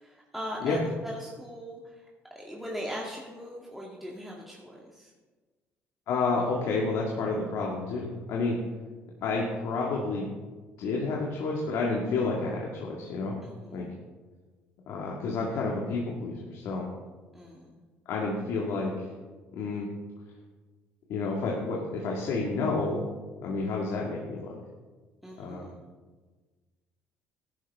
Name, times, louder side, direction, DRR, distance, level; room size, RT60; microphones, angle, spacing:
voice 1, 0.0-2.0 2.4-5.1 13.4-13.9 17.3-17.7 25.2-25.8, equal, 5° right, -3 dB, 2.1 m, -40 dB
voice 2, 6.1-8.6 9.2-10.3 10.8-13.4 13.7-13.9 14.9-16.9 18.1-19.1 19.5-19.9 21.1-23.0 23.4-24.5 25.4-25.7, left 3 dB, 70° left, -2 dB, 2.1 m, -30 dB
14.0 x 11.0 x 3.6 m, 1.3 s
supercardioid pair, 75°, 5 cm